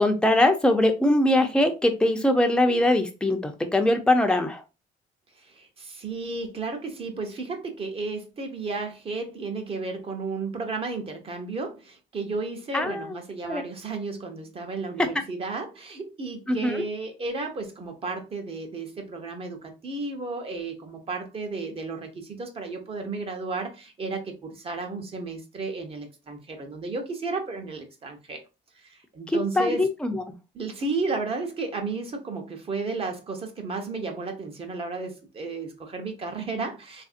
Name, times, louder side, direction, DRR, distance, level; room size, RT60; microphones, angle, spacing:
voice 1, 0.0-4.6 12.7-13.2 13.4-13.6 16.5-16.8 29.6-30.2, left 1 dB, 5° left, 0.6 m, -22 dB
voice 2, 5.4-28.4 28.8-29.9 30.5-37.0, right 3 dB, 35° right, 0.9 m, -33 dB
3.4 x 2.6 x 2.5 m
cardioid pair, 110°, 17 cm